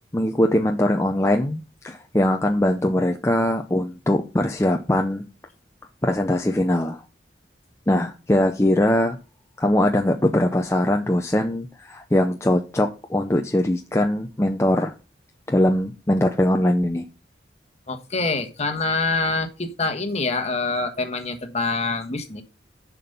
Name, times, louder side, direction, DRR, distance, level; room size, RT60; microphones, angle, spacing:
voice 1, 0.1-5.2 6.0-7.0 7.9-9.2 9.6-14.9 15.5-17.1, left 1 dB, 15° left, 0.6 m, -21 dB
voice 2, 17.9-22.4, left 3 dB, 35° left, 1.3 m, -25 dB
7.1 x 6.0 x 5.4 m
head